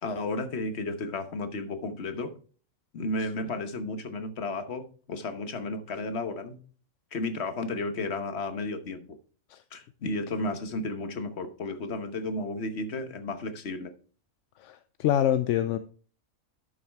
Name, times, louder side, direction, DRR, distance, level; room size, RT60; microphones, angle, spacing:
voice 1, 0.0-2.3 2.9-6.6 7.1-9.1 9.7-13.9, left 2 dB, 50° left, 1.3 m, -33 dB
voice 2, 14.6-15.8, left 11 dB, 65° left, 0.8 m, -25 dB
12.0 x 6.3 x 3.4 m
omnidirectional pair, 1.5 m